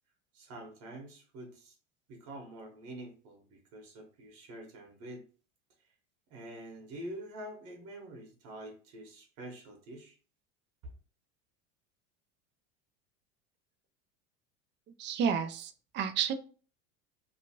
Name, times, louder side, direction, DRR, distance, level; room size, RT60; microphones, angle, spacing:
voice 1, 0.3-1.7 2.1-5.2 6.3-10.2, right 1 dB, 60° right, 2 dB, 1.2 m, -46 dB
voice 2, 15.0-16.3, right 7 dB, 30° right, 8 dB, 0.4 m, -31 dB
3.0 x 2.4 x 2.8 m, 0.39 s
hypercardioid pair, 95°, 38 cm